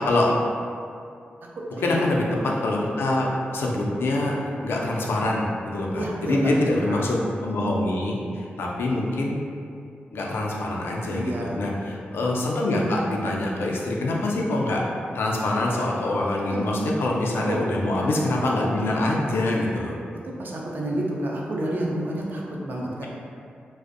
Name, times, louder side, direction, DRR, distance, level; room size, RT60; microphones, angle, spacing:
voice 1, 1.8-2.3 2.6-4.3 4.6-9.4 10.1-14.8 15.1-20.0, left 2 dB, 85° left, -2 dB, 0.3 m, -25 dB
voice 2, 5.9-7.1 11.1-11.6 16.4-16.6 17.4-17.6 17.9-18.1 20.2-23.1, right 1 dB, 55° right, -3 dB, 0.4 m, -30 dB
2.5 x 2.0 x 2.4 m, 2.4 s
cardioid pair, 80°, 4 cm